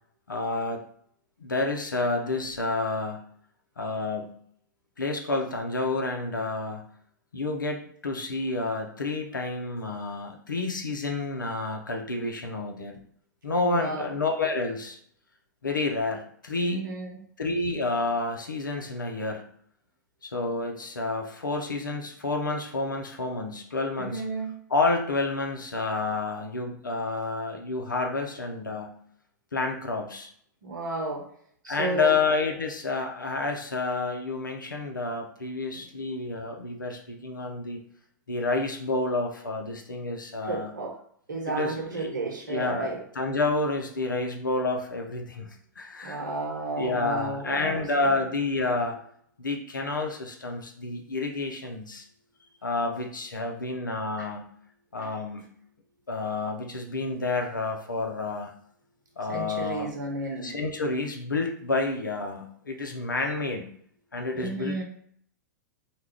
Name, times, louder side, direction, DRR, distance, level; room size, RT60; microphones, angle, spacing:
voice 1, 0.3-0.8 1.4-3.3 3.8-4.4 5.0-6.9 7.3-13.0 13.4-15.0 15.6-16.8 17.4-19.5 20.2-24.2 24.7-29.0 29.5-30.3 31.7-37.8 38.3-40.7 41.5-42.1 42.5-46.2 46.8-49.0 49.4-52.1 52.6-54.5 54.9-55.5 56.1-58.5 59.2-59.9 60.4-63.7 64.1-64.8, left 3 dB, 90° left, 3 dB, 0.5 m, -29 dB
voice 2, 13.6-14.1 16.7-17.1 24.0-24.5 30.6-31.3 31.6-32.2 35.7-35.9 40.5-41.0 41.3-43.0 46.0-48.1 54.2-54.3 55.0-55.2 59.3-60.5 64.3-64.8, right 3 dB, 75° right, 0 dB, 0.8 m, -33 dB
2.3 x 2.2 x 3.4 m, 0.62 s
figure-of-eight pair, 100°, 10 cm